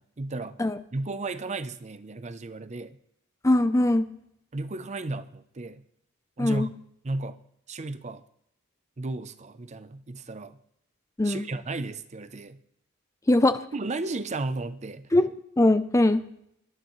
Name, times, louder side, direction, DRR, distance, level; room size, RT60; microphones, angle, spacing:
voice 1, 0.0-0.6 0.9-3.0 4.5-5.8 6.4-6.7 7.0-7.4 7.7-8.2 9.0-10.6 11.2-12.6 13.7-15.1, right 2 dB, 35° right, 12 dB, 0.6 m, -34 dB
voice 2, 3.4-4.1 6.4-6.7 11.2-11.4 13.3-13.6 15.1-15.3 15.6-16.2, left 1 dB, 15° left, 11 dB, 0.5 m, -21 dB
18.5 x 12.0 x 3.1 m, 0.73 s
head